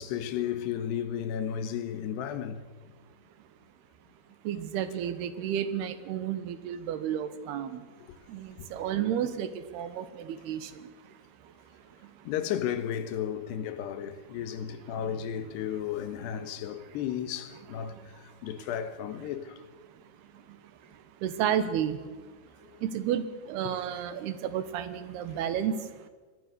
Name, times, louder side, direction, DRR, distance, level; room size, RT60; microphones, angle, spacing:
voice 1, 0.0-2.6 8.1-8.2 8.6-8.8 12.2-18.0 18.4-19.6 23.6-23.7, left 9 dB, 85° left, 3.4 m, -33 dB
voice 2, 4.5-7.8 8.3-9.5 9.7-10.7 21.2-22.0 22.8-25.7, right 9 dB, 75° right, 3.2 m, -31 dB
25.0 x 19.5 x 6.7 m
omnidirectional pair, 4.7 m